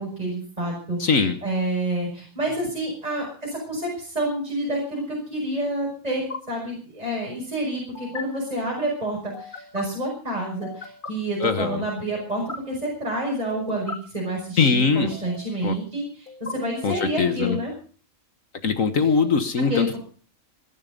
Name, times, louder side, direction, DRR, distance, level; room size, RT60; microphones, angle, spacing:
voice 1, 0.0-1.0 1.4-17.7 19.0-19.1 19.7-20.0, right 1 dB, 25° right, -3 dB, 6.4 m, -28 dB
voice 2, 1.0-1.4 11.4-11.8 14.6-15.1 15.6-15.8 16.8-17.6 18.6-20.0, left 5 dB, 70° left, 9 dB, 1.8 m, -21 dB
sound 1, 2.4-2.7 4.5-4.8 6.1-6.4 7.9-8.2 9.3-9.8 10.6-11.1 12.1-12.6 13.5-14.0 15.0-15.6 16.3-17.1, left 3 dB, 35° left, 2.1 m, -38 dB
21.0 x 11.5 x 5.3 m, 0.42 s
omnidirectional pair, 1.5 m